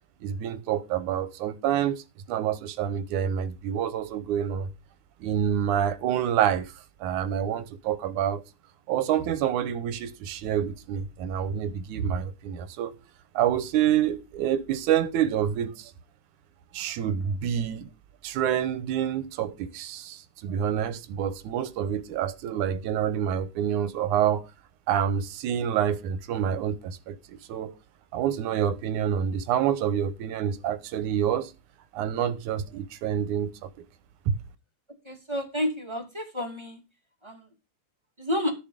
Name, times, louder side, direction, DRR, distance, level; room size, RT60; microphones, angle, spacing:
voice 1, 0.2-2.0 2.3-4.7 5.2-6.7 7.0-8.4 8.9-12.9 13.3-15.9 16.7-17.9 18.2-24.5 24.9-27.7 28.1-31.5 31.9-33.7 34.3-34.4, right 9 dB, 80° right, 2.3 m, -27 dB
voice 2, 35.0-36.8 37.2-37.4 38.2-38.5, left 1 dB, 10° right, 2.2 m, -30 dB
13.0 x 7.0 x 5.0 m
omnidirectional pair, 3.5 m